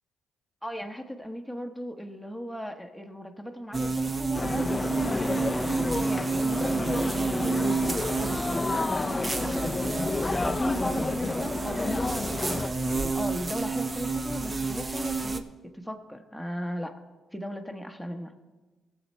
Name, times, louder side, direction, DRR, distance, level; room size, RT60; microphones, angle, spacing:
voice 1, 0.6-7.6 7.9-8.7 9.2-9.8 10.4-15.5 15.7-17.0 17.3-18.3, equal, ahead, 3 dB, 1.0 m, -37 dB
sound 1, 3.7-15.4, right 3 dB, 25° right, 0.7 m, -30 dB
sound 2, 4.3-12.7, left 3 dB, 25° left, 0.4 m, -30 dB
18.0 x 7.3 x 4.2 m, 1.2 s
cardioid pair, 90°, 0 cm